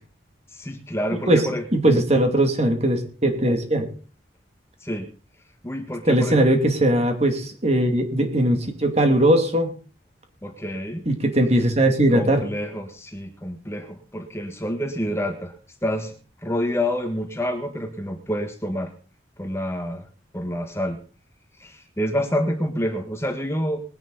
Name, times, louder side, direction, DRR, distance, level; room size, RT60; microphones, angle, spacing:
voice 1, 0.5-2.0 4.8-5.1 5.6-6.4 10.4-11.0 12.1-15.5 15.8-16.1 16.4-18.9 19.4-20.1 20.3-21.0 21.6-23.8, equal, 15° left, 6 dB, 1.5 m, -28 dB
voice 2, 1.1-1.4 1.7-3.9 6.1-9.7 11.1-12.4, right 1 dB, 35° right, 5 dB, 2.6 m, -19 dB
21.0 x 10.5 x 4.1 m, 0.38 s
head